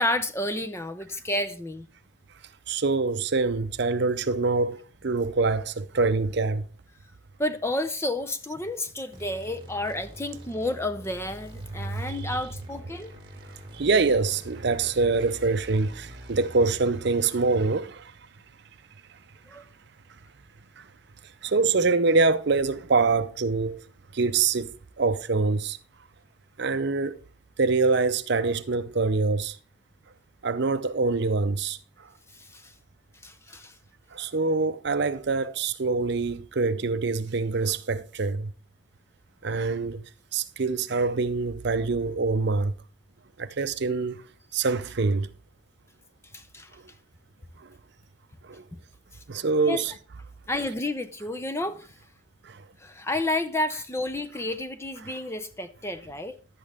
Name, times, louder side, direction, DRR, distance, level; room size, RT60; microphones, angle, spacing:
voice 1, 0.0-1.9 7.4-13.1 19.5-19.6 32.3-32.7 33.2-33.7 46.3-46.7 48.7-48.8 49.6-49.8 50.5-51.9 52.8-56.4, left 1 dB, 10° left, 0.5 m, -31 dB
voice 2, 2.7-6.6 11.8-12.4 13.4-18.1 19.5-19.6 20.8-20.9 21.4-23.8 24.1-25.8 26.6-27.2 27.6-29.6 30.4-32.1 34.1-38.5 39.4-40.0 40.3-42.7 43.4-44.2 44.5-45.3 46.7-46.8 47.6-47.7 48.4-48.6 49.3-49.9 52.4-52.6 55.0-55.2, right 4 dB, 50° right, 0.6 m, -25 dB
sound 1, 9.1-16.8, equal, 20° right, 1.8 m, -45 dB
11.0 x 8.4 x 3.6 m
head